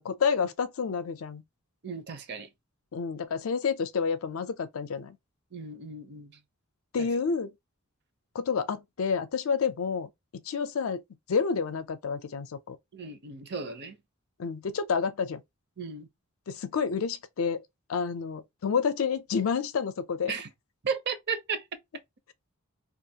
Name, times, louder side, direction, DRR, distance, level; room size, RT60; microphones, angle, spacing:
voice 1, 0.0-1.4 2.9-5.2 6.9-7.5 8.3-10.1 10.5-11.0 11.3-12.8 14.4-15.4 16.5-17.6 17.9-20.3, left 6 dB, 85° left, 0.5 m, -29 dB
voice 2, 1.8-2.5 5.5-6.3 7.0-7.1 12.9-14.0 15.8-16.1 20.3-20.5 20.8-21.6, right 5 dB, 55° right, 0.6 m, -35 dB
2.4 x 2.4 x 2.7 m
head